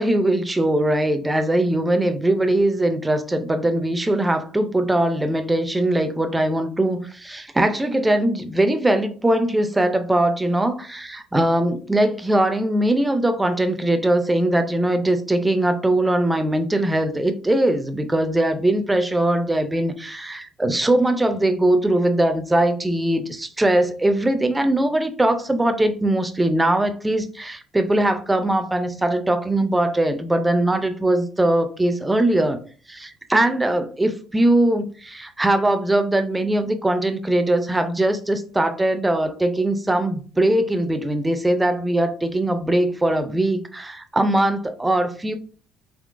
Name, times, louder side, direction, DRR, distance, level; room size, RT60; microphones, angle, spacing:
voice 1, 0.0-32.6 32.9-45.3, right 1 dB, 10° right, 0.3 m, -21 dB
3.6 x 3.0 x 2.4 m
cardioid pair, 165°, 0 cm